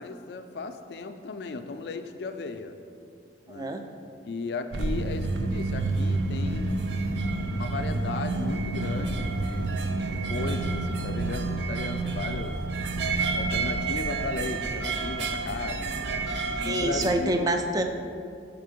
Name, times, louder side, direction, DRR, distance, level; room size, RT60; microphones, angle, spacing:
voice 1, 0.0-2.8 3.5-3.8 4.3-6.8 7.5-9.7 10.1-12.6 13.3-16.3 16.6-17.5, left 3 dB, 65° left, 8 dB, 0.3 m, -36 dB
voice 2, 3.5-3.8 16.6-17.8, right 1 dB, 20° right, 5 dB, 0.3 m, -26 dB
sound 1, 4.7-17.2, right 3 dB, 80° right, 0.5 m, -29 dB
5.9 x 3.7 x 5.0 m, 2.4 s
head